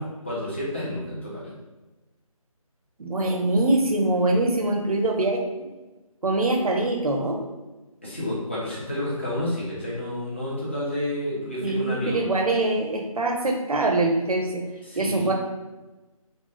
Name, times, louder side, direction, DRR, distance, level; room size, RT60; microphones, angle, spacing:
voice 1, 0.0-1.5 8.0-12.2 14.8-15.3, left 1 dB, 20° left, -8 dB, 0.5 m, -30 dB
voice 2, 3.0-5.7 6.2-7.4 11.6-14.6 15.0-15.3, right 2 dB, 80° right, 2 dB, 0.5 m, -23 dB
2.4 x 2.0 x 2.9 m, 1.1 s
figure-of-eight pair, 160°, 19 cm